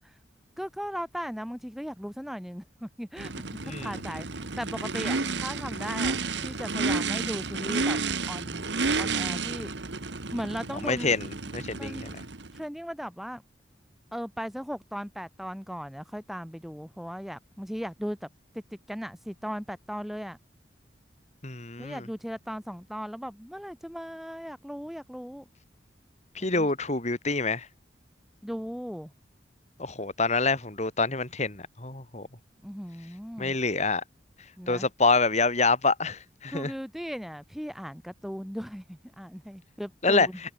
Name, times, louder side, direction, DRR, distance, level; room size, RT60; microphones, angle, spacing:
voice 1, 0.6-8.0 8.3-8.7 9.0-9.7 10.3-12.1 12.5-13.4 14.1-18.3 18.5-20.4 21.8-25.4 26.4-26.7 28.4-29.1 32.6-33.6 34.6-34.9 36.5-40.4, equal, ahead, 6.2 m, -37 dB
Race car auto racing / Idling / Accelerating revving vroom, 3.2-12.6, right 4 dB, 70° right, 1.8 m, -31 dB
voice 2, 10.8-11.3 11.5-12.2 21.4-22.0 26.3-27.7 29.8-32.3 33.4-34.0 34.7-36.7 40.0-40.3, left 3 dB, 35° left, 2.9 m, -26 dB
head